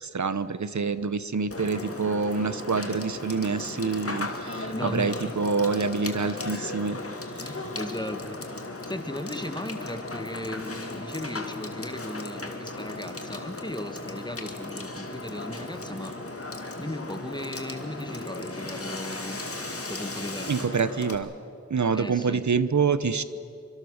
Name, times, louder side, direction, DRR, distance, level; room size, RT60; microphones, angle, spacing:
voice 1, 0.0-7.0 20.5-21.3 21.7-23.2, right 5 dB, 75° right, 14 dB, 0.9 m, -26 dB
Water / Water tap faucet / Sink (filling or washing), 1.5-21.2, left 2 dB, 50° left, 2.3 m, -36 dB
voice 2, 4.4-5.4 7.4-8.4 8.9-16.1 16.8-19.4 19.9-20.7 21.9-22.5, left 1 dB, 15° left, 7 dB, 1.9 m, -36 dB
25.0 x 24.5 x 6.6 m, 2.7 s
wide cardioid pair, 55°, 29 cm